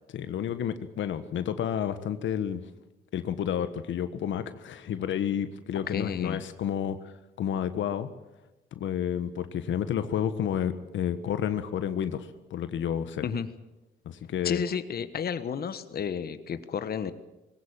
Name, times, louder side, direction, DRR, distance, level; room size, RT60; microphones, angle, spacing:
voice 1, 0.1-2.6 3.1-7.1 7.4-8.1 8.7-13.2 14.0-14.6, left 9 dB, 70° left, 11 dB, 1.3 m, -30 dB
voice 2, 5.7-6.4 13.2-13.5 14.4-17.1, left 7 dB, 50° left, 12 dB, 1.4 m, -32 dB
20.5 x 18.0 x 8.8 m, 1.0 s
cardioid pair, 90°, 20 cm